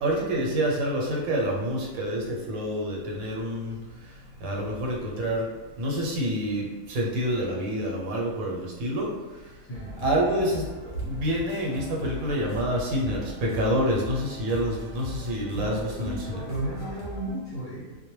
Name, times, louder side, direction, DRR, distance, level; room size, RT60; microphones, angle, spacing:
voice 1, 0.0-3.7 4.4-5.4 5.8-9.1 10.0-10.6 11.0-16.4, equal, 85° right, -2 dB, 1.1 m, -27 dB
sound 1, 9.7-17.4, right 1 dB, 50° right, 0.8 m, -40 dB
voice 2, 15.5-18.0, right 1 dB, 50° left, -8 dB, 0.7 m, -34 dB
2.2 x 2.1 x 3.0 m, 1.2 s
omnidirectional pair, 1.4 m